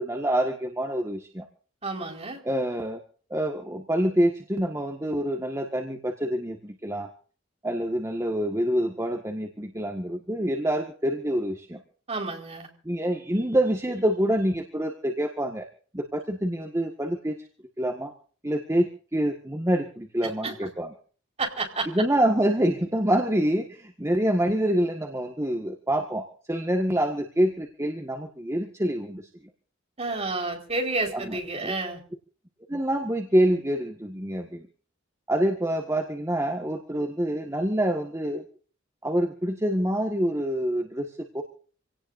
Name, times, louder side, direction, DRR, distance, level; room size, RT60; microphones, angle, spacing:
voice 1, 0.0-1.5 2.4-3.0 3.3-7.1 7.6-11.8 12.8-15.7 15.9-17.4 17.8-18.1 18.4-20.9 21.8-29.3 31.1-31.7 32.7-34.7 35.3-38.4 39.0-41.4, right 1 dB, 15° right, 3 dB, 1.7 m, -26 dB
voice 2, 1.8-2.4 12.1-12.7 20.4-20.5 21.4-21.9 30.0-32.0, right 3 dB, 30° right, 2 dB, 4.7 m, -30 dB
27.0 x 18.0 x 2.7 m, 0.43 s
head